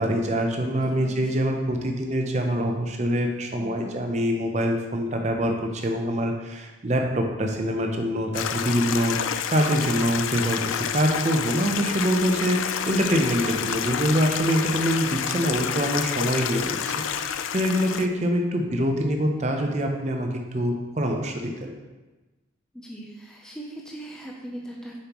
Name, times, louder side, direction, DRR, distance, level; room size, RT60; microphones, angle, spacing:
voice 1, 0.0-9.2 9.5-21.7, equal, 35° right, 2 dB, 0.7 m, -25 dB
voice 2, 0.7-1.5 3.6-4.0 22.7-25.0, right 1 dB, 5° left, -2 dB, 0.6 m, -40 dB
Stream, 8.3-18.1, left 8 dB, 85° left, 0.4 m, -29 dB
6.8 x 5.5 x 3.0 m, 1.2 s
head